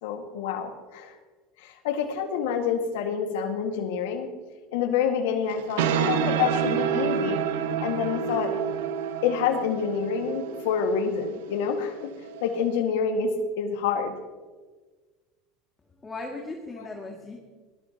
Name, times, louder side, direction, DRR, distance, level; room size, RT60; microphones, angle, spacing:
voice 1, 0.0-1.2 1.6-4.3 4.7-7.4 7.8-8.6 9.2-12.1 12.4-14.1, left 7 dB, 85° left, 4 dB, 1.9 m, -27 dB
sound 1, 5.5-12.7, right 8 dB, 90° right, 1.2 m, -29 dB
voice 2, 16.0-17.4, left 2 dB, 20° left, -1 dB, 2.2 m, -37 dB
24.5 x 18.5 x 3.0 m, 1.3 s
supercardioid pair, 115°, 0 cm